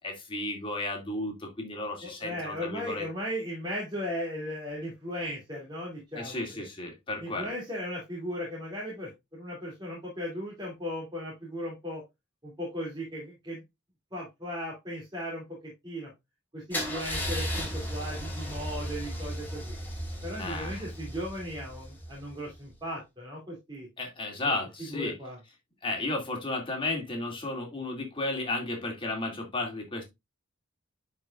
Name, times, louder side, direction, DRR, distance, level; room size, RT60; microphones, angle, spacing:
voice 1, 0.0-3.1 6.2-7.5 20.4-20.9 24.0-25.1 25.8-30.0, left 2 dB, 25° left, 2.4 m, -33 dB
voice 2, 2.0-6.4 7.2-12.0 12.4-13.6 14.1-16.1 16.5-19.7 20.2-23.9 24.9-25.4, equal, 20° right, 2.7 m, -37 dB
Car / Engine starting / Idling, 16.7-22.6, equal, 10° left, 2.7 m, -35 dB
11.0 x 4.9 x 2.5 m
head